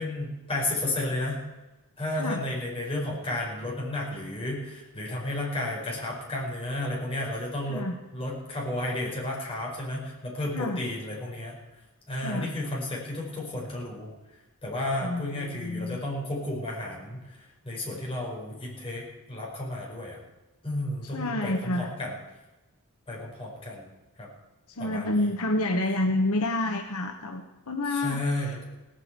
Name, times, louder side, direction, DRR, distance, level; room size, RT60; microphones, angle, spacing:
voice 1, 0.0-1.4 2.0-7.8 8.1-11.6 12.1-14.1 14.6-17.2 17.6-20.2 20.6-22.1 23.1-23.8 24.2-24.3 24.8-25.3 27.9-28.6, left 1 dB, 25° left, -3 dB, 5.2 m, -32 dB
voice 2, 15.0-16.0 21.0-22.0 24.7-28.6, left 1 dB, 80° left, 4 dB, 1.2 m, -29 dB
17.5 x 8.9 x 8.7 m, 1.1 s
head